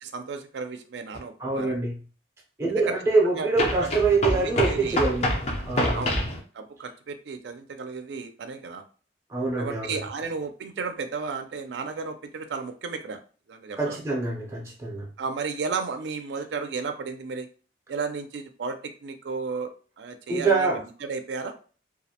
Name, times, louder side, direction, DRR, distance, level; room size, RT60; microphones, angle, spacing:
voice 1, 0.0-1.8 2.7-2.9 3.3-3.5 3.8-3.9 4.3-5.0 5.9-6.2 6.5-8.8 9.5-13.2 13.5-14.0 15.2-17.5 17.9-19.7 20.0-20.7 21.0-21.5, right 4 dB, 70° right, 8 dB, 0.4 m, -33 dB
sound 1, 1.1-1.2 3.6-6.4, left 1 dB, 35° left, 0.4 m, -26 dB
voice 2, 1.4-2.0 2.6-5.3 5.7-6.1 9.3-10.1 13.8-15.1 20.3-20.8, right 3 dB, 15° right, -2 dB, 0.5 m, -25 dB
2.4 x 2.0 x 2.7 m, 0.39 s
head